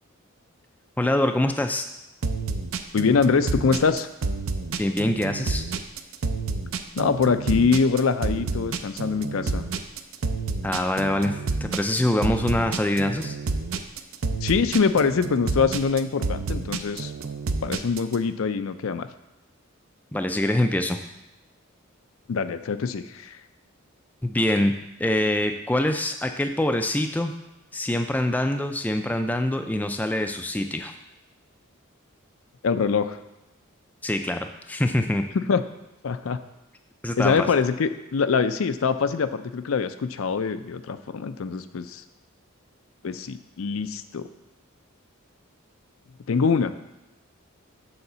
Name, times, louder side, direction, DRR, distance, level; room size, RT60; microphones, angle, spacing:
voice 1, 1.0-1.9 4.8-5.6 10.6-13.4 20.1-21.0 24.2-24.7 25.0-27.3 27.7-30.9 34.0-35.3 37.0-37.5, left 1 dB, 10° left, 6 dB, 0.3 m, -24 dB
sound 1, 2.2-18.1, right 3 dB, 70° right, 0.5 m, -29 dB
voice 2, 2.9-4.1 6.9-9.7 14.4-17.1 17.6-19.1 22.3-23.4 32.6-33.2 35.5-35.6 36.0-36.4 37.2-42.0 43.0-44.2 46.3-46.7, left 5 dB, 70° left, 10 dB, 0.5 m, -24 dB
7.0 x 4.0 x 6.7 m, 0.97 s
head